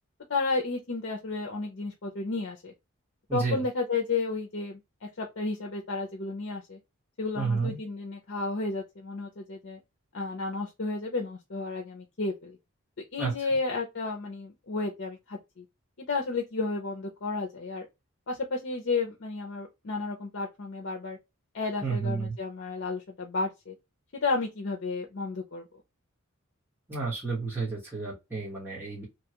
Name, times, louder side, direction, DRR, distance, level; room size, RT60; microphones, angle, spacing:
voice 1, 0.3-2.7 3.3-6.8 7.2-9.8 10.1-12.6 13.1-15.6 16.0-17.9 18.3-21.2 21.5-23.7 24.2-25.6, left 3 dB, 60° left, 0.6 m, -32 dB
voice 2, 3.3-3.6 7.3-7.8 13.2-13.5 21.8-22.3 26.9-29.0, right 4 dB, 10° right, 1.2 m, -31 dB
3.0 x 2.4 x 2.8 m
head